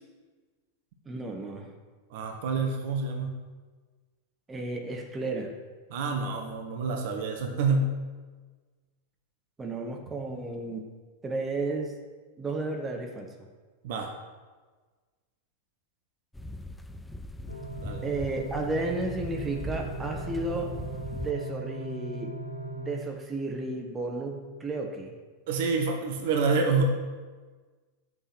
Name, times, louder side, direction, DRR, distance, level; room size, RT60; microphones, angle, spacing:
voice 1, 1.0-1.7 4.5-5.5 9.6-10.9 11.2-12.0 12.4-13.3 18.0-20.7 21.1-22.4 22.8-25.1, right 2 dB, 15° right, 2 dB, 1.6 m, -33 dB
voice 2, 2.1-3.4 5.9-8.0 13.8-14.1 17.8-18.0 25.5-26.8, right 4 dB, 50° right, 3 dB, 1.3 m, -27 dB
sound 1, 16.3-21.3, equal, 5° left, 0.5 m, -40 dB
sound 2, 17.5-22.9, right 2 dB, 80° left, 3.8 m, -38 dB
7.5 x 6.5 x 8.0 m, 1.4 s
figure-of-eight pair, 90°, 0 cm